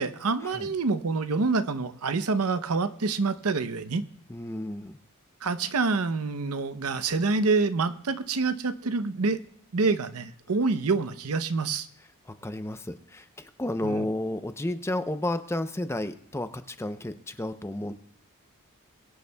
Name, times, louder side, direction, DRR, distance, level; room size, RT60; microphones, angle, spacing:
voice 1, 0.0-4.0 5.4-9.4 9.7-11.9 13.8-14.1, right 4 dB, 85° right, 11 dB, 0.7 m, -27 dB
voice 2, 4.3-5.0 12.3-17.9, left 1 dB, 10° left, 10 dB, 0.5 m, -32 dB
22.5 x 9.5 x 2.2 m, 0.68 s
head